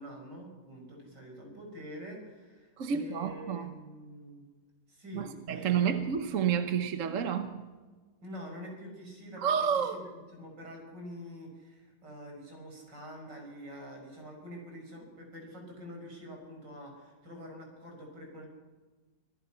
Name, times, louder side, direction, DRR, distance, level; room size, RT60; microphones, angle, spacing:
voice 1, 0.0-4.4 4.9-6.2 8.2-18.5, equal, 75° right, 1 dB, 6.7 m, -46 dB
voice 2, 2.8-3.7 5.1-7.6 9.4-10.0, right 7 dB, 50° right, 8 dB, 1.2 m, -30 dB
25.5 x 17.5 x 5.8 m, 1.3 s
omnidirectional pair, 1.9 m